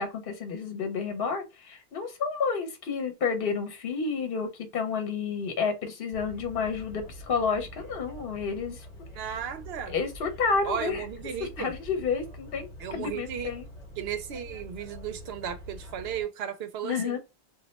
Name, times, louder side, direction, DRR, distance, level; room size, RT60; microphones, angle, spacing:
voice 1, 0.0-8.8 9.9-11.1 11.4-12.7 13.0-13.6 16.8-17.2, left 5 dB, 65° left, 0.9 m, -30 dB
sound 1, 6.1-16.3, equal, 40° left, 1.0 m, -45 dB
voice 2, 9.1-9.9 10.7-11.7 12.8-13.5 14.0-17.2, right 8 dB, 80° right, 0.8 m, -35 dB
2.3 x 2.1 x 3.9 m
omnidirectional pair, 1.0 m